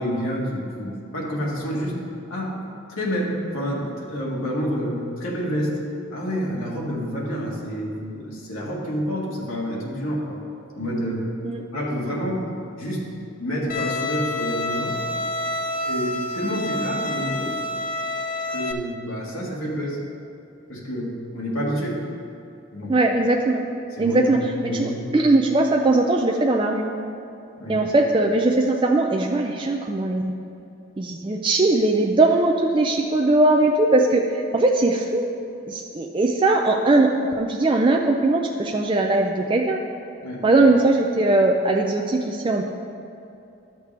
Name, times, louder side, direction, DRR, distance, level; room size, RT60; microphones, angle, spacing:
voice 1, 0.0-2.0 2.3-2.6 2.9-5.8 6.1-10.5 10.7-11.3 11.7-12.4 12.8-13.1 13.4-15.0 15.8-17.6 18.5-20.0 20.7-22.0 22.7-22.9 24.0-25.1 27.6-27.9 40.2-40.5, equal, 80° left, -4 dB, 1.8 m, -28 dB
Bowed string instrument, 13.7-18.7, left 2 dB, 40° left, 0.5 m, -28 dB
voice 2, 22.9-23.6 24.0-24.4 24.7-26.9 27.7-30.3 31.0-35.3 35.7-37.1 37.4-39.8 40.4-42.6, right 2 dB, 25° right, 1 dB, 0.3 m, -20 dB
12.0 x 6.5 x 3.4 m, 2.7 s
head